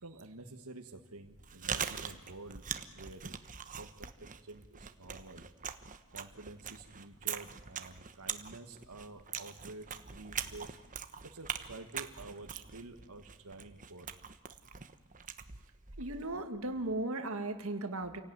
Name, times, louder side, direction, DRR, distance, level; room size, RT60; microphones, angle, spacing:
voice 1, 0.0-2.6 2.9-3.3 3.8-4.1 4.5-5.4 6.1-9.9 10.1-10.8 11.2-14.1, right 2 dB, 90° right, 4 dB, 1.7 m, -49 dB
Chewing mastication, 1.2-16.3, right 7 dB, 35° right, 1.1 m, -42 dB
voice 2, 16.0-18.2, right 2 dB, 65° right, 6 dB, 2.1 m, -36 dB
28.0 x 17.5 x 9.6 m, 1.2 s
head